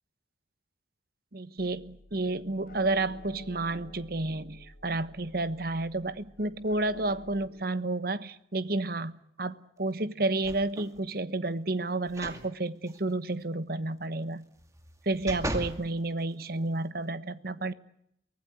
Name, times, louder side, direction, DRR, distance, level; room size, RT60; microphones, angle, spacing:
voice 1, 1.3-14.4 15.0-17.7, right 2 dB, 55° right, 14 dB, 1.2 m, -31 dB
sound 1, 1.6-7.5, left 1 dB, 50° left, 7.7 m, -51 dB
sound 2, 10.4-11.0 12.1-12.4 12.9-13.0 14.6-15.8 16.4-16.5, right 1 dB, 20° right, 2.5 m, -37 dB
24.0 x 19.0 x 9.3 m, 0.73 s
head